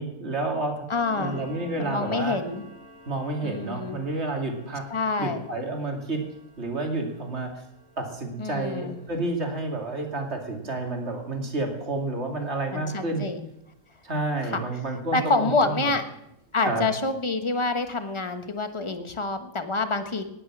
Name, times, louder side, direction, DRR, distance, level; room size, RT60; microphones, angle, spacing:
voice 1, 0.0-0.9 1.2-2.4 3.1-4.9 5.2-6.2 6.6-7.6 8.0-13.2 14.0-15.9 16.7-16.8, right 2 dB, 45° right, 3 dB, 2.8 m, -30 dB
sound 1, 0.9-16.0 16.4-16.6 17.1-17.2 17.6-17.7 18.2-18.3 18.6-18.7, equal, 45° left, 7.7 m, -52 dB
voice 2, 0.9-1.4 1.8-2.6 3.4-4.0 4.9-5.4 8.4-9.0 12.7-13.4 14.4-14.6 15.1-16.0 16.5-20.2, left 3 dB, 20° left, 8 dB, 1.2 m, -27 dB
18.5 x 10.0 x 6.1 m, 0.83 s
omnidirectional pair, 1.6 m